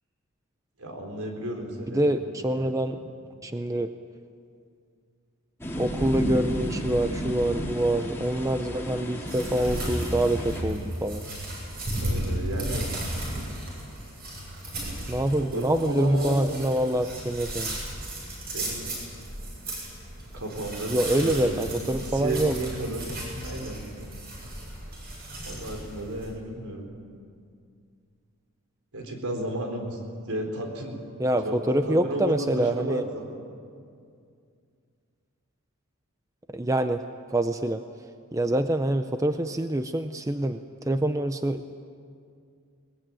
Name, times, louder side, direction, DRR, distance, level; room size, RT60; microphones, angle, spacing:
voice 1, 0.8-2.0 2.5-2.7 12.0-12.8 15.5-16.4 18.5-18.9 20.3-23.0 23.4-23.8 25.4-26.9 28.9-30.0 30.3-31.0 31.4-33.4, right 1 dB, 80° right, 2 dB, 4.2 m, -33 dB
voice 2, 1.9-3.0 3.4-3.9 5.8-11.3 15.1-17.8 20.9-22.6 31.2-33.0 36.5-37.0 37.3-37.8 38.3-41.6, right 1 dB, 15° right, 8 dB, 0.5 m, -26 dB
sound 1, 5.6-10.6, equal, 10° left, 2.2 m, -32 dB
sound 2, 9.3-26.3, right 1 dB, 45° right, 7.9 m, -35 dB
21.5 x 21.0 x 9.0 m, 2.3 s
head